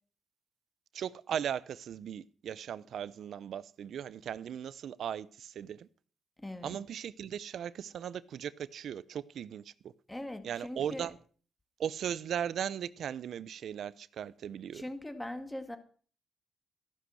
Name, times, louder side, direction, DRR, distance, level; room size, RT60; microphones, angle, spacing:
voice 1, 0.9-5.9 6.6-9.9 10.4-11.2 11.8-14.8, right 9 dB, 70° right, 0.7 m, -38 dB
voice 2, 6.4-6.8 10.1-11.1 14.7-15.8, left 1 dB, 10° left, 2.0 m, -41 dB
14.5 x 11.5 x 6.3 m
cardioid pair, 125°, 0 cm